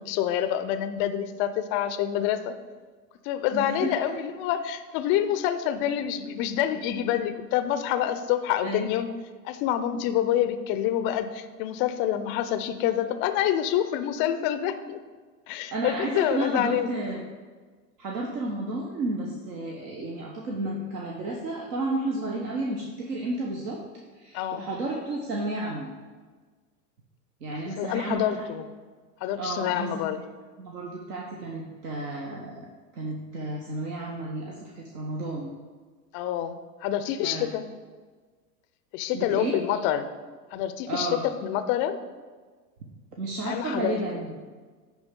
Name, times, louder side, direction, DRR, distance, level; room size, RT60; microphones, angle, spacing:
voice 1, 0.0-2.6 3.2-9.1 9.4-15.0 15.5-17.0 24.3-24.6 27.7-28.7 29.2-30.2 36.1-37.7 38.9-40.1 40.5-42.0 43.5-44.2, left 11 dB, 30° left, 10 dB, 0.3 m, -27 dB
voice 2, 3.5-3.9 8.6-8.9 15.7-17.2 18.0-23.8 24.1-25.9 27.4-28.2 29.4-30.2 30.6-32.7 32.9-35.5 37.2-37.5 39.1-39.6 40.9-41.3 43.2-44.3, right 2 dB, 75° right, -1 dB, 1.2 m, -32 dB
9.9 x 3.5 x 5.2 m, 1.4 s
hypercardioid pair, 95°, 49 cm